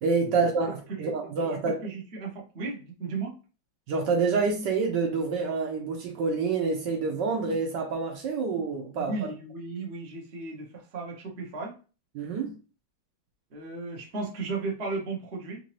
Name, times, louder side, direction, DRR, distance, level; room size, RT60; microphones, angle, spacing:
voice 1, 0.0-1.8 3.9-9.1 12.1-12.5, right 4 dB, 70° right, 2 dB, 1.2 m, -27 dB
voice 2, 1.7-3.3 9.0-11.8 13.5-15.6, right 3 dB, 50° right, -2 dB, 0.8 m, -35 dB
3.9 x 2.6 x 3.0 m, 0.35 s
omnidirectional pair, 2.2 m